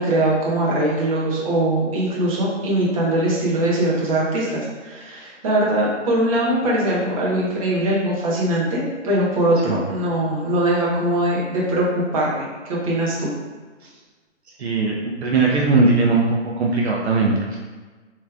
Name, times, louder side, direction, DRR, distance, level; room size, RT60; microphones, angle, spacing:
voice 1, 0.0-13.3, right 1 dB, 30° right, -5 dB, 1.1 m, -21 dB
voice 2, 14.6-17.6, right 3 dB, 60° right, -2 dB, 0.7 m, -19 dB
6.2 x 3.2 x 2.4 m, 1.3 s
hypercardioid pair, 155°, 37 cm